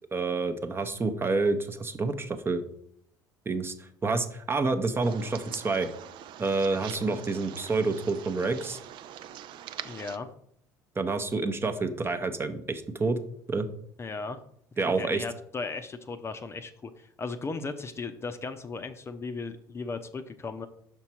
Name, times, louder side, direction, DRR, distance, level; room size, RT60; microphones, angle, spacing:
voice 1, 0.1-2.6 3.5-5.9 6.4-8.8 11.0-13.2 13.5-13.7 14.8-15.2, right 3 dB, 25° right, 8 dB, 0.8 m, -28 dB
sound 1, 5.0-10.2, right 11 dB, 55° right, 0.5 m, -44 dB
voice 2, 9.8-10.3 14.0-14.4 15.0-20.7, left 4 dB, 25° left, 8 dB, 0.6 m, -36 dB
6.0 x 5.6 x 4.4 m, 0.67 s
hypercardioid pair, 65°, 10 cm